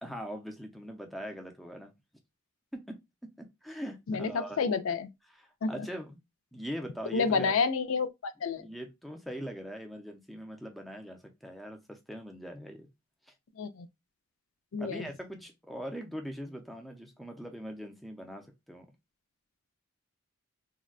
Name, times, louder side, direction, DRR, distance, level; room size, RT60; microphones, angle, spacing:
voice 1, 0.0-1.9 2.7-3.0 3.4-4.6 5.4-6.2 6.5-7.5 8.6-12.9 14.8-18.9, equal, ahead, 0.4 m, -41 dB
voice 2, 4.1-5.1 5.6-5.7 7.1-8.7 13.6-13.9 14.7-15.0, left 5 dB, 70° left, 0.4 m, -29 dB
3.7 x 2.1 x 2.3 m
head